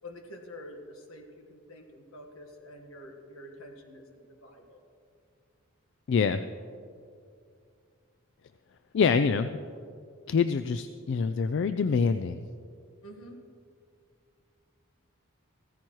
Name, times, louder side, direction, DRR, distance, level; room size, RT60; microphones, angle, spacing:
voice 1, 0.0-4.8 13.0-13.4, left 1 dB, 75° left, 4 dB, 1.4 m, -47 dB
voice 2, 6.1-6.4 8.9-9.6 10.3-12.4, left 5 dB, 55° left, 11 dB, 0.3 m, -25 dB
15.5 x 14.5 x 3.1 m, 2.4 s
head